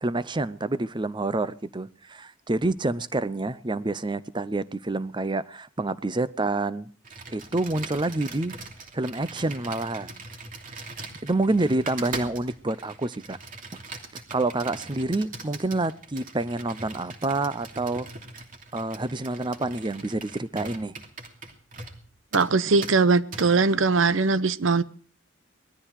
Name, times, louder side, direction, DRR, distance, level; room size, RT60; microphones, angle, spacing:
voice 1, 0.0-6.9 7.3-8.6 8.9-10.2 11.2-13.4 14.1-18.1 18.7-20.9 22.7-22.8, right 2 dB, 25° right, 0.7 m, -28 dB
Computer keyboard, 7.0-22.0 22.3-22.5 22.8-23.0 23.3-23.5, right 3 dB, 45° right, 2.8 m, -41 dB
voice 2, 22.3-24.8, right 4 dB, 85° right, 0.9 m, -21 dB
19.5 x 13.5 x 4.9 m
head